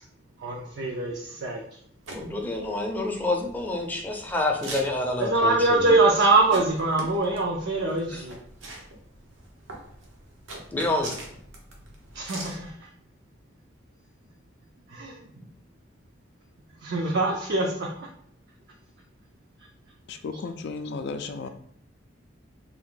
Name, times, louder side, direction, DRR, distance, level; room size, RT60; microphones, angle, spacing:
voice 1, 0.4-1.6 5.2-8.4 12.1-12.9 14.9-15.4 16.8-17.9, right 2 dB, 55° right, 0 dB, 0.5 m, -23 dB
sound 1, 2.0-12.7, right 2 dB, 85° right, 0.9 m, -43 dB
voice 2, 2.1-5.9 8.1-8.2 10.7-11.1, left 2 dB, 10° left, 1 dB, 0.5 m, -28 dB
voice 3, 20.1-21.5, left 4 dB, 60° left, 9 dB, 0.4 m, -34 dB
3.5 x 2.5 x 3.8 m, 0.65 s
head